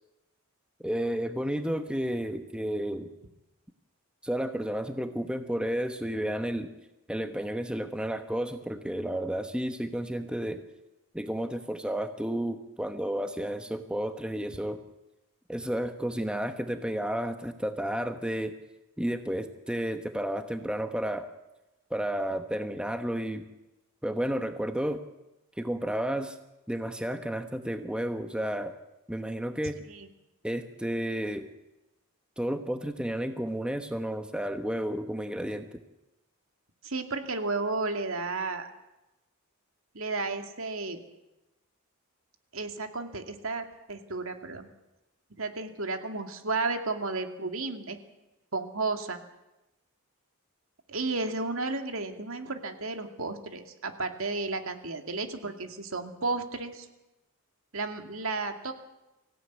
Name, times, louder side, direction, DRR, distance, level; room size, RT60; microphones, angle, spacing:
voice 1, 0.8-3.1 4.2-6.7 7.1-10.6 11.1-14.8 15.5-18.5 19.0-21.3 21.9-23.4 24.0-25.0 25.6-26.4 26.7-28.7 29.1-29.8 30.4-31.5 32.4-35.7, equal, 5° right, 7 dB, 1.1 m, -32 dB
voice 2, 36.8-38.7 39.9-41.0 42.5-44.7 45.4-48.0 48.5-49.2 50.9-56.9 57.7-58.7, right 3 dB, 70° right, 6 dB, 2.4 m, -33 dB
25.0 x 16.5 x 9.4 m, 1.0 s
head